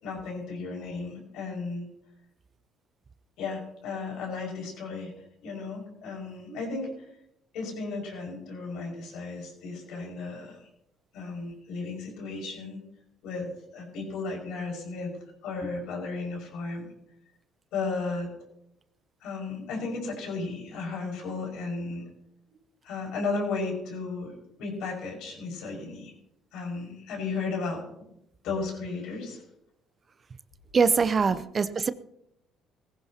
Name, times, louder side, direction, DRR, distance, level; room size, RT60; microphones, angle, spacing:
voice 1, 0.0-1.8 3.4-5.1 5.4-6.9 7.5-10.7 11.1-12.8 13.2-15.2 15.4-16.8 17.7-18.3 19.2-22.0 22.8-26.1 26.5-27.8 28.4-29.4 31.7-31.8, left 3 dB, 75° left, 0 dB, 5.7 m, -34 dB
voice 2, 30.7-31.9, right 5 dB, 40° right, 15 dB, 0.7 m, -23 dB
19.0 x 16.0 x 3.0 m, 0.79 s
supercardioid pair, 70°, 0 cm